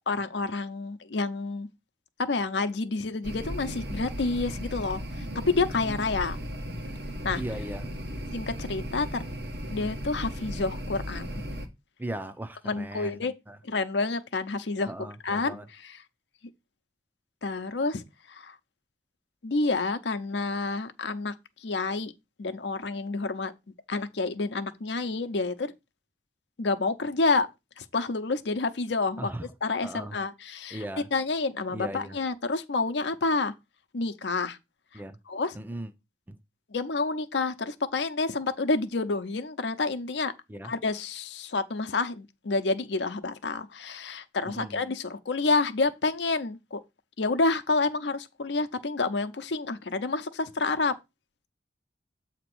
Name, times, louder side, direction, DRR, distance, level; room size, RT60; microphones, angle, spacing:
voice 1, 0.1-1.7 2.2-5.0 5.5-6.4 7.2-7.4 8.3-9.2 9.7-11.4 12.6-13.3 13.6-14.9 15.2-15.6 15.8-16.0 17.4-18.0 18.3-18.5 19.4-21.3 21.6-22.1 22.4-23.5 23.9-25.7 26.6-27.5 27.8-29.3 29.6-30.8 31.1-33.5 33.9-34.6 35.3-35.6 36.7-40.3 40.6-46.8 47.2-50.9, left 3 dB, 75° left, 0.7 m, -29 dB
sound 1, 3.2-11.7, equal, 65° right, 1.1 m, -36 dB
voice 2, 5.8-6.2 7.3-7.9 12.0-13.6 14.9-15.7 29.2-29.5 29.8-30.2 30.7-31.1 31.7-32.2 34.9-35.2 35.5-35.9 36.3-36.4 40.5-40.7 44.5-44.8, right 1 dB, 10° right, 0.5 m, -38 dB
7.7 x 2.9 x 6.0 m
head